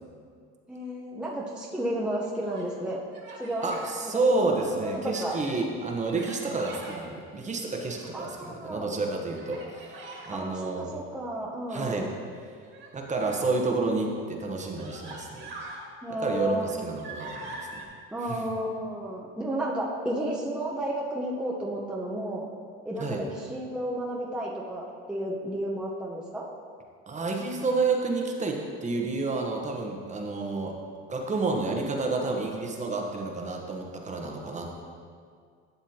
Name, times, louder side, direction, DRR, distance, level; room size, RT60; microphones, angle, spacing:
voice 1, 0.7-3.0 3.4-3.7 4.0-5.4 8.1-8.9 10.3-12.1 16.0-16.7 18.1-22.5 22.8-26.5, right 1 dB, 5° right, -4 dB, 0.9 m, -32 dB
Human voice, 2.1-2.7 3.1-3.9 4.4-5.6 6.0-7.0 7.6-8.4 9.3-10.3 12.6-13.5 14.2-14.3 14.8-15.8 16.3-17.8, right 2 dB, 40° right, 2.0 m, -44 dB
voice 2, 3.6-10.9 11.7-12.1 12.9-15.5 16.2-17.8 18.3-18.4 23.0-23.2 27.1-30.7 31.1-34.7, right 3 dB, 25° right, 1 dB, 1.1 m, -30 dB
12.0 x 6.9 x 2.9 m, 2.1 s
supercardioid pair, 110°, 30 cm